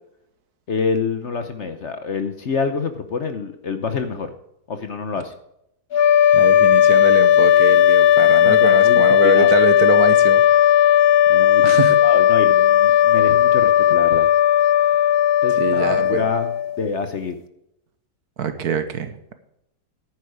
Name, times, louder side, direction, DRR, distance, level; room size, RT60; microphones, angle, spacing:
voice 1, 0.7-4.3 4.7-5.3 8.4-9.5 11.3-14.3 15.4-16.5 16.8-17.3, left 5 dB, 50° left, 8 dB, 1.0 m, -27 dB
sound 1, 5.9-16.9, left 10 dB, 90° left, 0.5 m, -15 dB
voice 2, 6.3-10.7 11.6-12.0 15.6-16.3 18.4-19.3, right 6 dB, 65° right, 9 dB, 1.5 m, -24 dB
11.0 x 9.6 x 4.9 m, 0.79 s
omnidirectional pair, 1.8 m